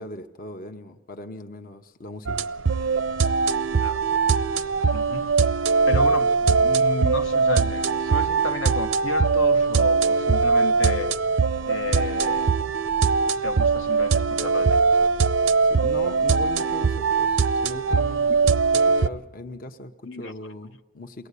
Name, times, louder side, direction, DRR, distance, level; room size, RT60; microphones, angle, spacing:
voice 1, 0.0-2.5 15.6-21.3, left 1 dB, 45° left, 0.9 m, -39 dB
sound 1, 2.3-19.1, right 4 dB, 80° right, 0.6 m, -21 dB
voice 2, 4.9-5.5 5.9-11.1 11.6-12.5 13.4-15.1 20.1-20.3, left 4 dB, 70° left, 1.0 m, -32 dB
22.0 x 18.0 x 8.3 m
head